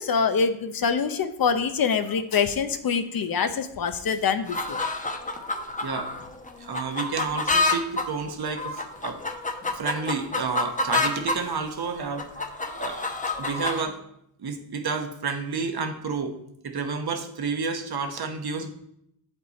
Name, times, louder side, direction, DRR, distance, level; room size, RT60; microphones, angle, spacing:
voice 1, 0.0-4.8, left 6 dB, 55° left, 10 dB, 0.7 m, -25 dB
sound 1, 4.5-11.4 11.9-13.8, left 3 dB, 20° left, 0.8 m, -28 dB
voice 2, 5.8-6.2 6.6-9.2 9.7-12.5 12.8-13.0 13.4-14.0 14.4-16.3 16.6-18.7, right 5 dB, 60° right, 6 dB, 1.1 m, -30 dB
7.9 x 5.3 x 4.1 m, 0.75 s
cardioid pair, 85°, 43 cm